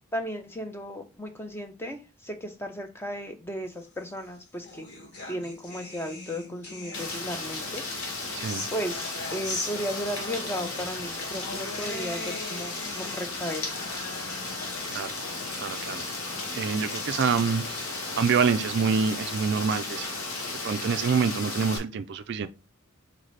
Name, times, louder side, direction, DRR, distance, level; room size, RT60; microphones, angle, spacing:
voice 1, 0.1-4.9 5.3-8.2 8.7-13.7, equal, 10° left, 0.6 m, -35 dB
sound 1, 4.1-7.5 8.0-19.5, left 2 dB, 50° left, 1.7 m, -41 dB
Rain, 6.9-21.8, left 3 dB, 70° left, 1.4 m, -35 dB
voice 2, 8.3-8.7 14.9-15.1 15.5-16.1 16.6-20.2 20.6-22.5, right 5 dB, 50° right, 0.3 m, -26 dB
4.0 x 4.0 x 3.2 m
head